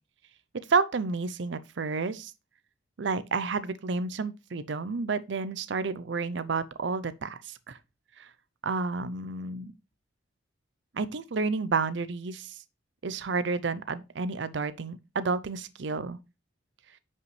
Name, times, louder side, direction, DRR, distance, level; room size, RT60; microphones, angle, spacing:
voice 1, 0.7-2.3 3.0-7.8 8.2-8.3 8.6-9.7 10.9-12.5 13.0-16.2, right 4 dB, 70° right, 0.6 m, -30 dB
9.3 x 5.4 x 3.2 m
head